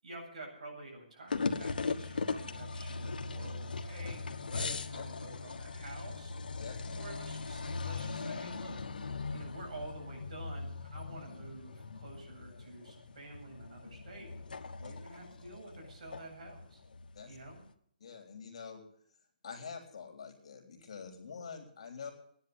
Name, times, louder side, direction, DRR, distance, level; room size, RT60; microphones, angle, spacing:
voice 1, 0.0-6.6 6.9-8.7 9.3-14.3 14.8-16.8 17.3-17.6, right 2 dB, 50° right, 0 dB, 8.0 m, -49 dB
sound 1, 1.3-17.7, left 4 dB, 90° left, 1.5 m, -40 dB
voice 2, 6.6-7.1 14.8-14.9 17.1-17.4 18.0-18.8 19.4-22.1, left 6 dB, 45° left, 3 dB, 3.6 m, -46 dB
16.5 x 10.5 x 8.0 m, 0.63 s
hypercardioid pair, 175°, 5 cm